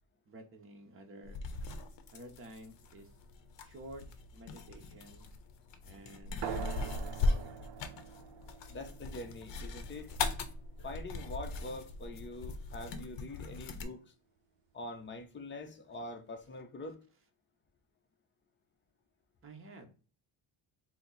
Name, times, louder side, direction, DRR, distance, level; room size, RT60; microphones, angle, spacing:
voice 1, 0.3-1.4 2.1-3.1 3.6-4.0 4.3-5.3 5.8-7.6 19.4-19.9, right 1 dB, 25° right, 0.8 m, -52 dB
sound 1, 1.2-13.8, left 3 dB, 60° left, 0.7 m, -39 dB
sound 2, 6.4-11.5, right 9 dB, 60° right, 0.6 m, -45 dB
voice 2, 8.7-10.1 10.8-14.1 14.7-17.0, left 2 dB, 25° left, 0.6 m, -44 dB
4.3 x 2.0 x 3.8 m
cardioid pair, 140°, 48 cm